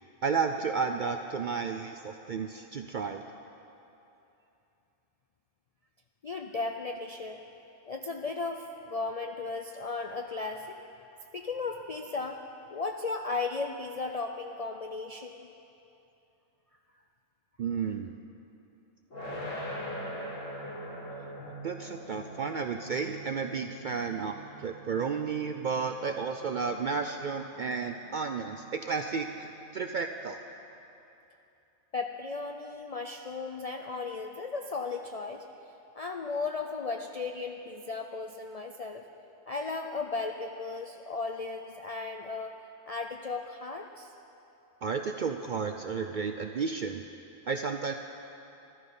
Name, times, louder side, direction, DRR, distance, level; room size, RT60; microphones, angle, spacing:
voice 1, 0.2-3.2 17.6-18.2 21.6-29.5 29.7-30.4 44.8-47.0 47.5-47.9, right 5 dB, 60° right, 6 dB, 0.5 m, -32 dB
voice 2, 6.2-7.4 7.9-10.8 11.3-12.4 12.7-15.5 31.9-35.5 35.9-39.0 39.5-42.6 42.9-44.1, left 3 dB, 60° left, 4 dB, 0.4 m, -35 dB
sound 1, 19.1-30.1, equal, 80° left, 2.7 m, -44 dB
13.5 x 13.0 x 5.4 m, 2.9 s
omnidirectional pair, 1.3 m